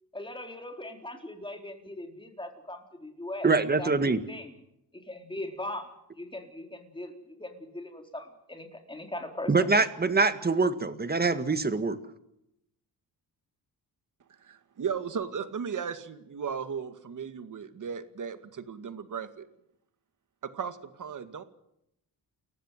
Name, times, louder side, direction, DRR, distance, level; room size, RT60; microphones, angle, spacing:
voice 1, 0.1-3.5 3.8-4.5 5.1-5.9 6.2-9.5, left 1 dB, 10° left, 4 dB, 4.1 m, -40 dB
voice 2, 3.4-4.2 9.5-12.0, right 4 dB, 25° right, 10 dB, 1.9 m, -24 dB
voice 3, 14.4-19.5 20.4-21.4, right 7 dB, 50° right, 10 dB, 2.2 m, -36 dB
29.5 x 15.0 x 7.6 m, 0.80 s
wide cardioid pair, 130°, 39 cm